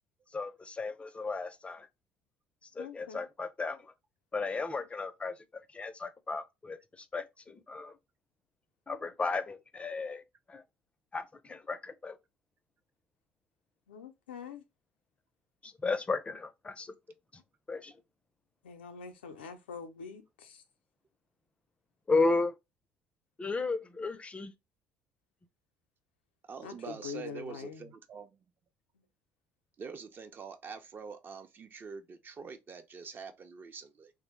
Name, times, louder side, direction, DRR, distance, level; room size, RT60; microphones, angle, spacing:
voice 1, 0.3-1.9 2.7-3.9 4.3-8.0 8.9-10.2 10.5-10.6 11.1-12.2 15.6-16.9 17.3-17.4 17.7-17.9 22.1-22.6 23.4-24.5, left 3 dB, 20° left, 0.5 m, -34 dB
voice 2, 2.8-3.2 13.9-14.6 18.6-20.6 26.6-27.9, left 5 dB, 85° left, 0.5 m, -44 dB
voice 3, 26.5-28.4 29.8-34.1, right 5 dB, 40° right, 0.5 m, -45 dB
3.3 x 2.1 x 3.1 m
hypercardioid pair, 60°, 5 cm